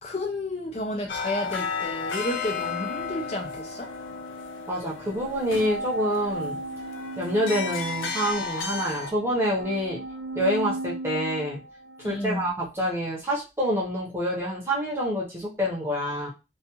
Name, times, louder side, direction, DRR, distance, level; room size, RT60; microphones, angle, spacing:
voice 1, 0.0-3.9 12.0-12.5, left 1 dB, 35° left, 0.4 m, -31 dB
sound 1, 1.1-9.1, left 5 dB, 90° left, 0.5 m, -33 dB
voice 2, 4.7-6.6 7.2-10.0 10.3-11.6 12.0-16.3, equal, 15° right, 0.8 m, -27 dB
sound 2, 5.6-12.5, right 2 dB, 70° right, 0.5 m, -36 dB
2.4 x 2.3 x 2.8 m
head